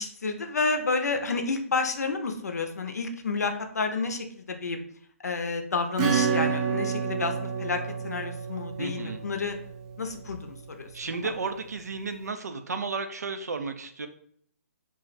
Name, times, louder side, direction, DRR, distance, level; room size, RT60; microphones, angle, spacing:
voice 1, 0.0-4.8 5.2-9.6 10.0-10.9 11.2-11.3, left 4 dB, 80° left, 6 dB, 0.5 m, -30 dB
Acoustic guitar / Strum, 6.0-10.3, right 6 dB, 25° right, 0.4 m, -29 dB
voice 2, 8.8-9.2 10.9-14.1, right 4 dB, 85° right, 8 dB, 0.4 m, -33 dB
2.4 x 2.1 x 3.9 m, 0.63 s
hypercardioid pair, 150°, 9 cm